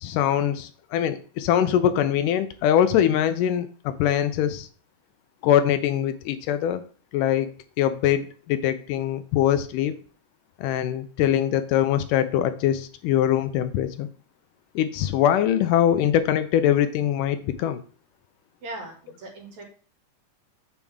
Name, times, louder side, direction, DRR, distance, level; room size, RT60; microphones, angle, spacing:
voice 1, 0.0-4.7 5.4-6.8 7.1-7.5 7.8-10.0 10.6-14.1 14.8-17.8, left 10 dB, 80° left, 10 dB, 2.1 m, -23 dB
voice 2, 18.6-19.7, right 2 dB, 60° right, 1 dB, 3.3 m, -39 dB
7.4 x 7.0 x 3.5 m, 0.41 s
omnidirectional pair, 3.8 m